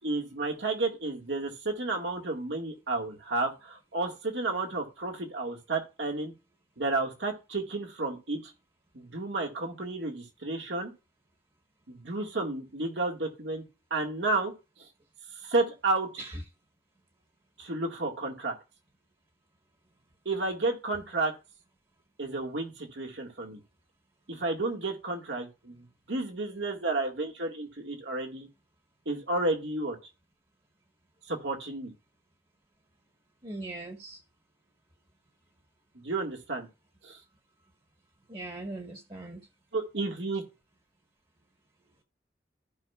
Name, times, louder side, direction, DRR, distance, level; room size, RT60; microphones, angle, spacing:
voice 1, 0.0-6.3 6.8-8.5 8.9-10.9 11.9-13.6 13.9-14.5 15.3-16.2 17.6-18.5 20.3-21.3 22.2-23.6 24.3-28.5 29.1-30.0 31.3-31.9 36.0-36.7 37.0-37.2 39.7-40.4, right 2 dB, 85° right, 2 dB, 1.8 m, -31 dB
voice 2, 33.4-34.2 38.3-39.4, right 2 dB, 30° right, 3 dB, 1.2 m, -40 dB
15.0 x 5.6 x 2.4 m, 0.29 s
head